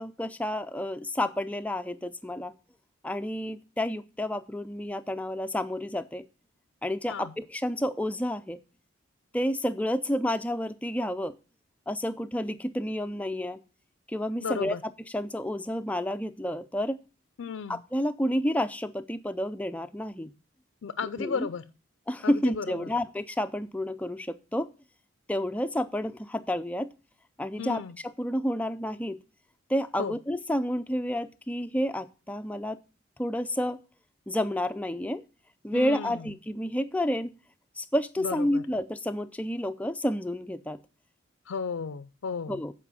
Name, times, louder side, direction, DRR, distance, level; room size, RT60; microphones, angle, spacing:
voice 1, 0.0-2.5 3.0-6.3 6.8-8.6 9.3-11.4 11.9-13.6 14.1-14.8 15.1-17.0 17.7-20.3 21.2-21.5 22.1-24.7 25.3-26.9 27.4-29.2 29.7-32.8 33.2-33.8 34.3-35.2 35.6-37.3 37.8-40.8 42.5-42.7, left 1 dB, 5° left, 10 dB, 0.4 m, -30 dB
voice 2, 14.4-14.8 17.4-17.8 20.8-21.6 22.2-22.7 27.6-27.9 30.0-30.1 35.7-36.2 38.2-38.6 41.5-42.6, left 5 dB, 80° left, 12 dB, 0.4 m, -34 dB
8.5 x 4.9 x 6.9 m, 0.34 s
head